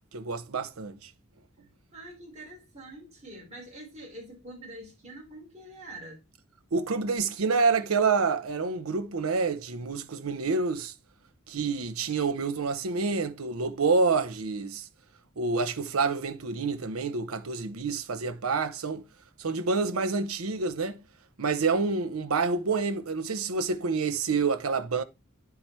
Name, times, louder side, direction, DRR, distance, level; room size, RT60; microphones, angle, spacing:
voice 1, 0.1-1.1 6.7-10.9 11.5-14.9 15.4-19.0 19.4-21.0 21.4-25.0, right 4 dB, 75° right, 0.7 m, -28 dB
voice 2, 1.9-6.2, right 1 dB, 35° right, 3.5 m, -45 dB
9.4 x 4.7 x 4.2 m
head